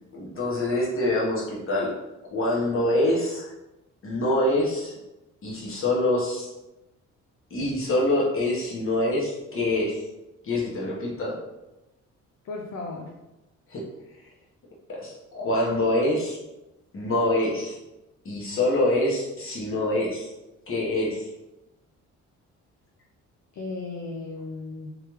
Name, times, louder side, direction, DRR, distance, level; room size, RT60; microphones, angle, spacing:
voice 1, 0.1-2.0 2.3-3.5 4.0-5.0 5.4-6.5 7.5-10.0 10.4-11.4 13.7-13.8 14.9-16.4 16.9-17.8 18.2-20.3 20.7-21.3, left 1 dB, 45° left, -4 dB, 1.3 m, -25 dB
voice 2, 12.4-13.1 23.6-25.0, left 3 dB, 60° left, 0 dB, 0.6 m, -35 dB
3.3 x 3.3 x 3.1 m, 0.98 s
cardioid pair, 90°, 30 cm